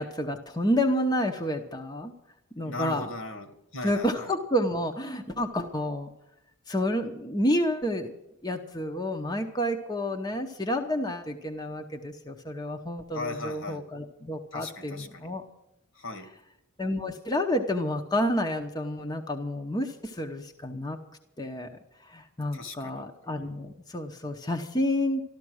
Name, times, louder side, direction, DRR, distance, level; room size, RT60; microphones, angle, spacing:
voice 1, 0.0-2.1 2.6-3.1 3.8-6.1 6.7-8.1 8.4-15.4 16.8-21.0 21.4-25.2, left 1 dB, 20° left, 3 dB, 0.9 m, -29 dB
voice 2, 2.6-4.3 13.1-13.8 14.5-15.3 15.9-16.3 22.5-23.0, left 2 dB, 70° left, 7 dB, 2.0 m, -38 dB
13.5 x 13.0 x 6.3 m, 0.84 s
head